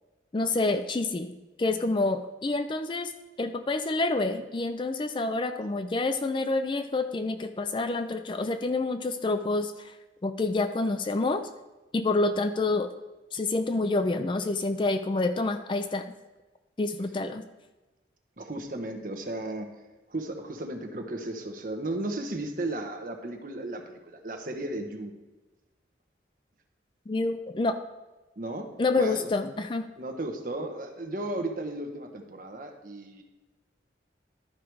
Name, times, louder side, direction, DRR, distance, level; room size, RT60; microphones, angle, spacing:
voice 1, 0.3-3.1 3.4-10.0 10.2-11.4 11.9-12.9 13.3-16.1 16.8-17.4 27.1-27.8 28.8-29.9, left 2 dB, 25° left, 9 dB, 0.4 m, -28 dB
voice 2, 18.4-19.7 20.1-25.1 28.4-28.7 29.0-29.3 30.0-33.2, right 2 dB, 45° right, 4 dB, 1.0 m, -35 dB
12.0 x 4.8 x 4.6 m, 1.1 s
head